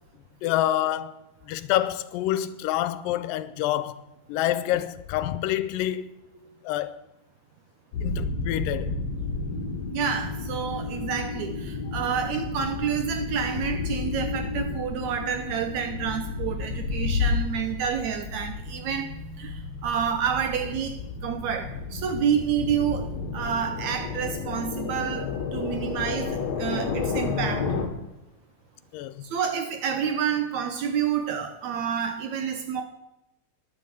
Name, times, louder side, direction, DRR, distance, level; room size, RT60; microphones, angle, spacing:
voice 1, 0.4-1.1 1.5-4.0 4.3-6.1 6.6-7.0 8.0-9.0 28.9-29.2, left 13 dB, 90° left, 2.3 m, -27 dB
sound 1, 7.9-27.9, left 4 dB, 60° left, 2.5 m, -31 dB
voice 2, 9.9-19.1 19.4-27.7 29.2-32.8, right 8 dB, 75° right, 1.8 m, -29 dB
10.0 x 7.5 x 8.3 m
omnidirectional pair, 3.9 m